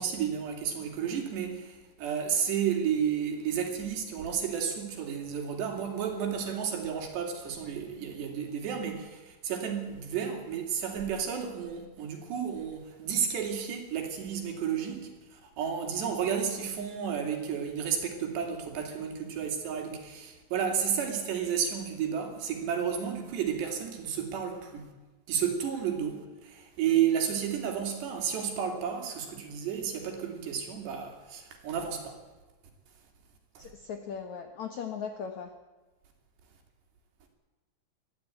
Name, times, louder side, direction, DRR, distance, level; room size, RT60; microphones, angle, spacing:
voice 1, 0.0-24.9 25.3-32.2 33.6-33.7, right 8 dB, 70° right, 4 dB, 5.0 m, -32 dB
voice 2, 33.6-35.5, left 7 dB, 70° left, 6 dB, 1.8 m, -38 dB
22.0 x 14.5 x 9.2 m, 1.2 s
omnidirectional pair, 5.2 m